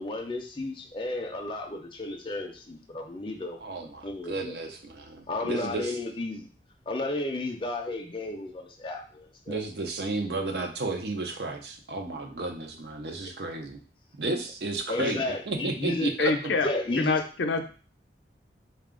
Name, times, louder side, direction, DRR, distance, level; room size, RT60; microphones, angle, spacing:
voice 1, 0.0-3.6 4.0-4.5 5.3-6.5 6.9-9.6 14.9-16.1 16.6-17.2, left 2 dB, 30° left, 2 dB, 0.4 m, -33 dB
voice 2, 3.6-6.0 9.5-13.8 14.2-16.3, right 3 dB, 70° right, 4 dB, 0.6 m, -33 dB
voice 3, 16.2-16.7 17.0-17.7, left 4 dB, 85° left, 6 dB, 0.5 m, -26 dB
3.7 x 2.3 x 3.6 m, 0.39 s
head